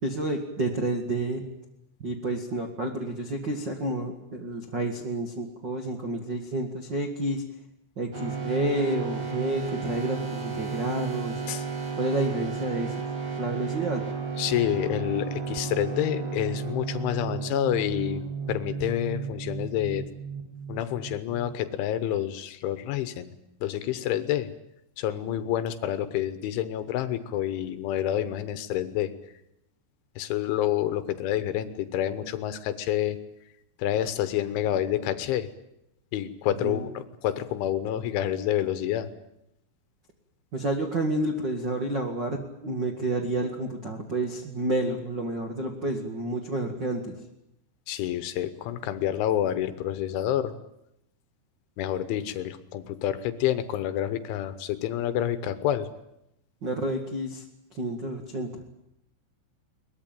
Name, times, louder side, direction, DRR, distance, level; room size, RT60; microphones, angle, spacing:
voice 1, 0.0-1.4 2.0-7.4 7.9-11.4 12.0-13.0 13.4-14.0 36.6-36.8 40.5-47.1 56.6-57.4 57.7-58.7, right 2 dB, 70° right, 3 dB, 1.0 m, -30 dB
sound 1, 8.1-21.7, right 5 dB, 35° right, 6.1 m, -33 dB
voice 2, 14.4-18.2 18.5-20.1 20.7-23.3 23.6-24.5 25.0-29.1 30.2-33.2 33.8-35.5 36.1-39.1 47.9-50.5 51.8-55.9, left 11 dB, 75° left, 12 dB, 3.3 m, -28 dB
22.5 x 20.5 x 9.1 m, 0.82 s
omnidirectional pair, 5.9 m